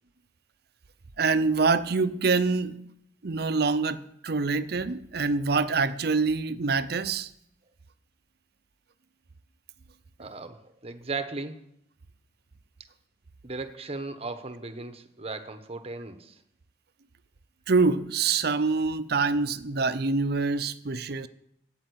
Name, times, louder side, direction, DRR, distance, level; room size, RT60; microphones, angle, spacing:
voice 1, 1.2-2.8 3.2-7.3 17.7-21.3, right 4 dB, 65° right, 13 dB, 0.7 m, -25 dB
voice 2, 10.2-11.6 13.4-16.3, right 3 dB, 35° right, 9 dB, 1.1 m, -36 dB
13.0 x 9.0 x 8.0 m, 0.75 s
head